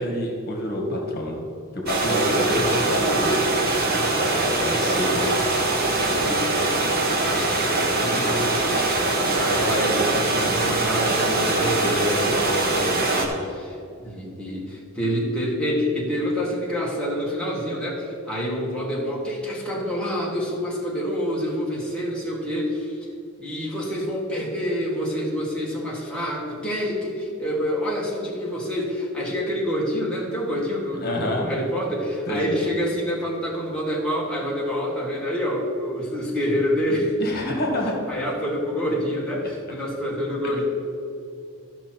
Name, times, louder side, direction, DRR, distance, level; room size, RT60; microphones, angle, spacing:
voice 1, 0.0-1.4 1.7-3.4 4.6-5.3 31.0-31.5 32.3-32.5 37.2-37.9, left 1 dB, 50° left, 0 dB, 1.5 m, -27 dB
sound 1, 1.9-13.3, right 2 dB, 50° right, 1.3 m, -22 dB
voice 2, 2.0-2.3 4.1-4.9 6.1-13.8 14.0-23.0 23.4-37.1 38.1-40.6, equal, 5° left, -5 dB, 1.6 m, -27 dB
13.5 x 6.1 x 4.5 m, 2.5 s
head